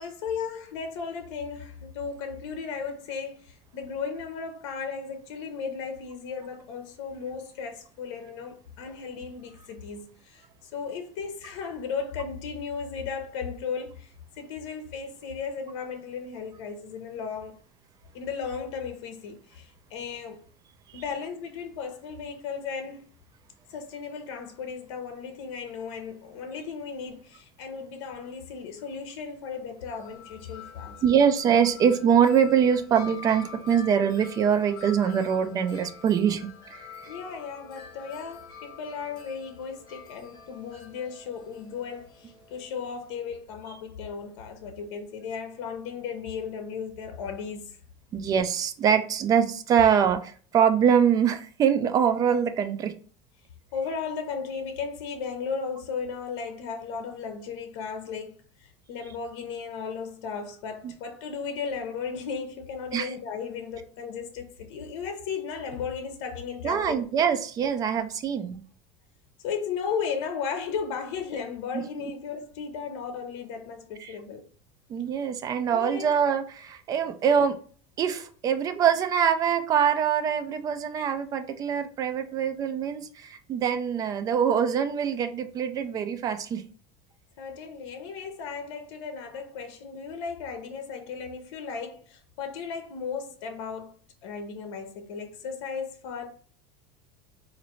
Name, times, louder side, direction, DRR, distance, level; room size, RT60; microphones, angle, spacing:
voice 1, 0.0-17.6 18.1-20.5 20.9-23.0 23.7-31.0 37.1-47.8 53.7-67.0 69.4-74.5 75.7-76.1 87.4-94.0 94.2-96.3, left 6 dB, 70° left, 0.8 m, -35 dB
Wind chime, 29.8-43.1, left 7 dB, 30° left, 1.2 m, -47 dB
voice 2, 31.0-37.0 48.1-52.9 62.9-63.1 66.6-68.6 71.7-71.8 74.0-74.1 74.9-77.6 78.0-86.6, right 8 dB, 25° right, 0.4 m, -24 dB
4.0 x 2.6 x 3.0 m
supercardioid pair, 160°, 15 cm